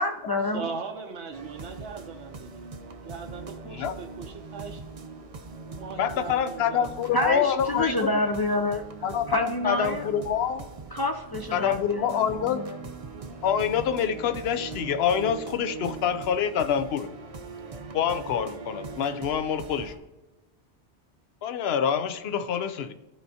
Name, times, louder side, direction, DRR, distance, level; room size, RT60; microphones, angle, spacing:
voice 1, 0.0-0.7 7.1-8.9 9.3-10.1 10.9-12.8, left 1 dB, 40° left, 3 dB, 0.3 m, -28 dB
voice 2, 0.5-2.5 3.1-4.8 5.7-6.9, right 5 dB, 80° right, 3 dB, 1.0 m, -39 dB
sound 1, 1.3-20.0, right 4 dB, 40° right, 0.6 m, -41 dB
voice 3, 3.6-3.9 6.0-7.9 9.0-10.6 11.5-12.6 13.4-17.1 17.9-19.9 21.4-22.9, left 8 dB, 70° left, 11 dB, 0.8 m, -26 dB
13.5 x 4.6 x 2.7 m, 1.1 s
omnidirectional pair, 1.1 m